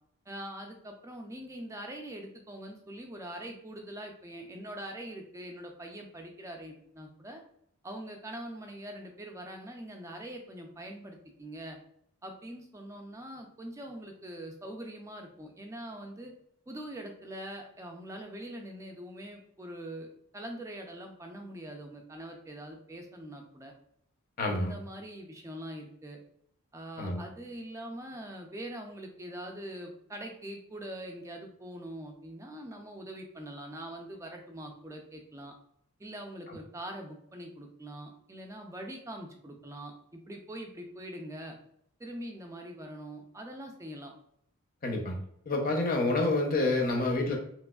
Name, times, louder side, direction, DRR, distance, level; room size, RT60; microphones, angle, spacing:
voice 1, 0.3-7.4 7.8-11.8 12.2-16.3 16.7-20.1 20.3-23.7 24.5-26.2 26.7-35.5 36.0-41.5 42.0-44.1, right 1 dB, 15° right, 3 dB, 0.3 m, -43 dB
voice 2, 24.4-24.7 27.0-27.2 44.8-45.2 45.5-47.4, left 2 dB, 40° left, 2 dB, 0.6 m, -28 dB
3.3 x 3.0 x 2.3 m, 0.71 s
head